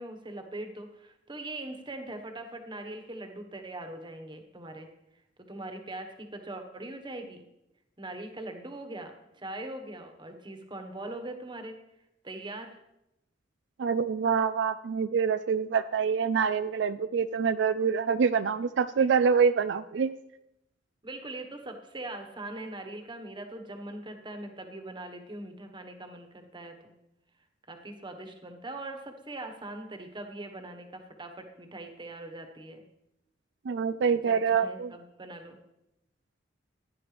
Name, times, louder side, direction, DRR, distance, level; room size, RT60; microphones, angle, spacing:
voice 1, 0.0-4.9 5.5-7.4 8.0-11.8 12.2-12.7 21.0-26.9 27.7-32.8 34.3-35.6, right 2 dB, 25° right, 5 dB, 1.3 m, -41 dB
voice 2, 13.8-20.1 33.7-34.9, right 6 dB, 70° right, 12 dB, 0.4 m, -26 dB
15.5 x 10.5 x 3.4 m, 0.88 s
head